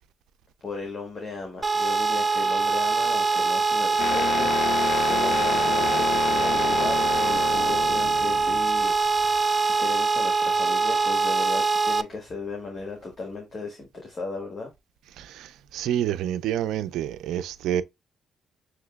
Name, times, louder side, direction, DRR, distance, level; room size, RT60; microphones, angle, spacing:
voice 1, 0.6-14.7, left 3 dB, 35° left, 1.5 m, -36 dB
sound 1, 1.6-12.0, right 4 dB, 20° right, 0.4 m, -23 dB
sound 2, 4.0-9.4, left 10 dB, 80° left, 0.3 m, -30 dB
voice 2, 15.2-17.8, right 11 dB, 85° right, 0.4 m, -28 dB
6.4 x 3.0 x 2.2 m
cardioid pair, 90°, 0 cm